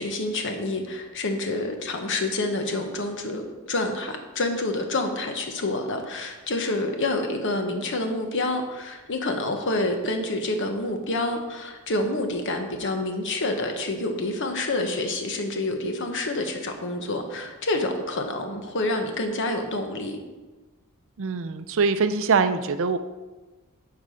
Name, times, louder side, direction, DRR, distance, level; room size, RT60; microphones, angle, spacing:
voice 1, 0.0-20.2, left 2 dB, 55° left, 5 dB, 1.1 m, -28 dB
voice 2, 21.2-23.0, right 4 dB, 60° right, 10 dB, 0.5 m, -23 dB
10.5 x 4.8 x 5.1 m, 1.2 s
head